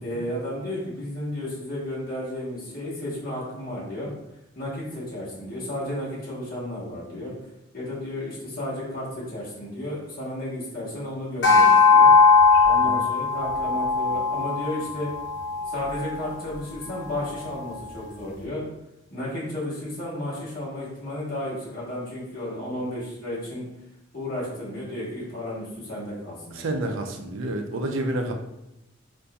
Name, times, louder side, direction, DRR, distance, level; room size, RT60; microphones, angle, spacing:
voice 1, 0.0-4.1 4.5-7.3 7.7-12.1 12.7-15.1 15.7-18.6 19.1-23.6 24.1-26.8, left 1 dB, 45° left, -8 dB, 1.3 m, -33 dB
sound 1, 11.4-16.0, left 4 dB, 65° left, 0.6 m, -19 dB
voice 2, 26.6-28.3, right 1 dB, 85° right, 4 dB, 0.5 m, -29 dB
3.9 x 2.6 x 2.3 m, 0.88 s
head